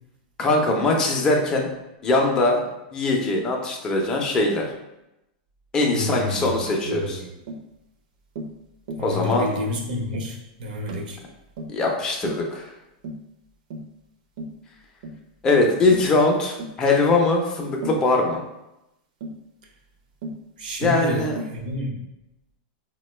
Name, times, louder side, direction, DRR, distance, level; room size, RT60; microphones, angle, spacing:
voice 1, 0.4-1.7 2.0-2.6 2.9-4.6 5.7-7.2 9.0-9.5 11.7-12.7 15.4-18.4 20.8-21.4, left 2 dB, 15° left, 0 dB, 0.4 m, -21 dB
voice 2, 5.9-6.5 6.8-7.3 9.0-11.2 20.6-21.2 21.5-22.0, equal, 85° right, 1 dB, 0.8 m, -29 dB
Tap, 6.7-6.8 7.5-7.7 8.3-8.6 8.9-9.1 9.5-9.7 10.1-10.3 10.9-11.1 11.6-11.8 12.2-12.5 13.0-13.3 13.7-13.9 14.4-14.6 15.0-15.2 15.9-16.1 16.6-16.8 17.8-18.1 19.2-19.4 20.2-20.4 20.8-21.0 21.4-21.6, right 1 dB, 55° right, 0.5 m, -35 dB
4.5 x 2.1 x 3.1 m, 0.91 s
supercardioid pair, 175°, 5 cm